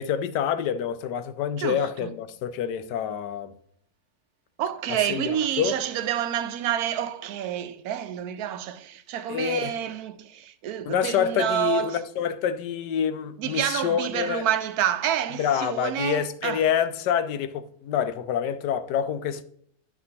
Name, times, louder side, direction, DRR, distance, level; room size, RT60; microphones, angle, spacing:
voice 1, 0.0-3.5 4.9-5.8 9.3-9.7 10.8-14.4 15.4-19.4, left 8 dB, 80° left, 1.2 m, -27 dB
voice 2, 1.6-2.1 4.6-12.0 13.4-16.6, right 10 dB, 70° right, 1.0 m, -28 dB
11.0 x 5.9 x 2.8 m
omnidirectional pair, 1.8 m